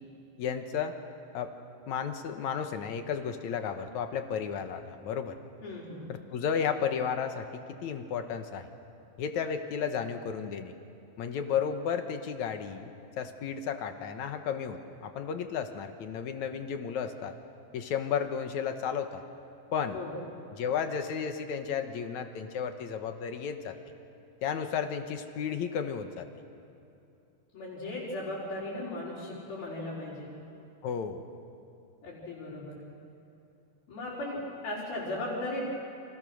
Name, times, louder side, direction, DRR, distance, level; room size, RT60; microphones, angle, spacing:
voice 1, 0.4-0.9 1.3-1.5 1.9-5.4 6.1-8.7 9.2-10.7 11.2-17.4 17.7-19.2 19.7-20.0 20.6-23.8 24.4-26.3 30.8-31.2, left 7 dB, 65° left, 7 dB, 2.3 m, -33 dB
voice 2, 5.6-6.0 19.9-20.1 27.5-30.3 32.0-32.8 33.9-35.7, left 1 dB, 80° left, -8 dB, 6.8 m, -37 dB
30.0 x 27.0 x 6.4 m, 2.7 s
omnidirectional pair, 4.2 m